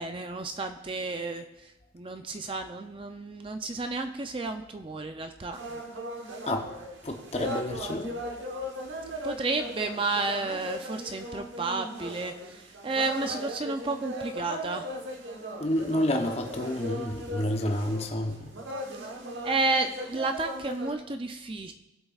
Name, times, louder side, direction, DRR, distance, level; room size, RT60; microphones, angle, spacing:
voice 1, 0.0-5.8 9.2-14.9 18.9-19.1 19.4-21.7, right 3 dB, 30° right, 0.5 m, -32 dB
sound 1, 5.5-20.9, equal, 90° right, 1.2 m, -38 dB
voice 2, 7.0-8.2 15.6-18.6, left 1 dB, 35° left, 0.8 m, -29 dB
18.0 x 8.1 x 2.4 m
head